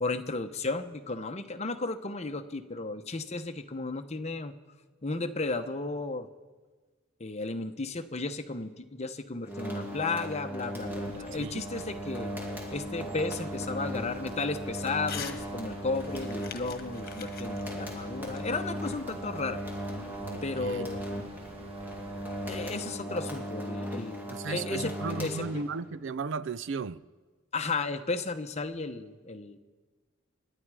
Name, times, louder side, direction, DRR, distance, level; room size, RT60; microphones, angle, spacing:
voice 1, 0.0-4.5 5.0-6.3 7.2-12.3 12.7-19.6 20.4-21.0 22.4-24.2 24.4-25.4 27.5-29.6, left 3 dB, 35° left, 0.9 m, -34 dB
sound 1, 9.4-25.9, equal, 10° right, 2.5 m, -37 dB
sound 2, 10.8-22.7, right 2 dB, 30° right, 1.0 m, -51 dB
voice 2, 11.3-11.6 20.2-20.9 24.3-27.0, right 4 dB, 65° right, 0.5 m, -35 dB
Crumpling crinkling / Tearing, 15.0-15.4 15.7-19.1, left 7 dB, 50° left, 1.4 m, -43 dB
30.0 x 10.0 x 4.9 m
head